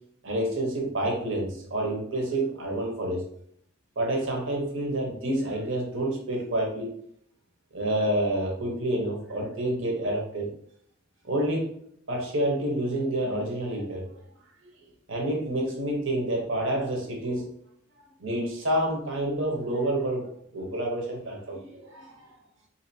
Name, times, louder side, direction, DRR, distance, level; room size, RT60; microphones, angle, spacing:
voice 1, 0.2-3.2 4.0-7.0 7.7-10.5 11.2-11.7 12.1-14.2 15.1-17.5 18.2-22.3, right 1 dB, 70° right, -1 dB, 1.0 m, -28 dB
3.8 x 2.8 x 2.7 m, 0.67 s
head